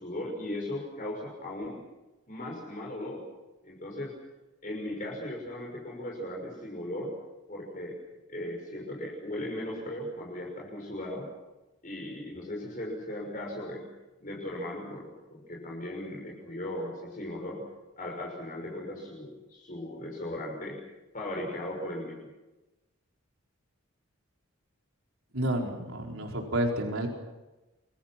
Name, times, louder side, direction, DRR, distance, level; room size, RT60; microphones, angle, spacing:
voice 1, 0.0-1.8 2.3-3.2 3.6-4.2 4.6-7.1 7.5-7.9 8.3-11.3 11.8-13.9 14.2-17.6 18.0-20.8 21.1-22.2, left 1 dB, 40° left, -2 dB, 6.0 m, -37 dB
voice 2, 25.3-27.1, right 1 dB, 80° right, 1 dB, 4.6 m, -30 dB
29.0 x 22.5 x 6.0 m, 1.1 s
head